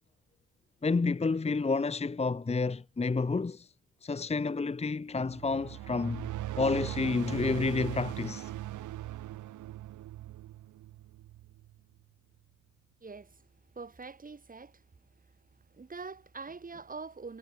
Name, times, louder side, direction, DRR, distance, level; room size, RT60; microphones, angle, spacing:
voice 1, 0.8-3.7 4.0-6.3 6.6-8.5, left 4 dB, 20° left, 1.3 m, -30 dB
sound 1, 5.3-11.8, right 14 dB, 80° right, 1.6 m, -40 dB
voice 2, 13.0-13.5 13.7-14.9 15.2-15.3 15.6-17.4, right 4 dB, 30° right, 5.1 m, -44 dB
cardioid pair, 90°, 30 cm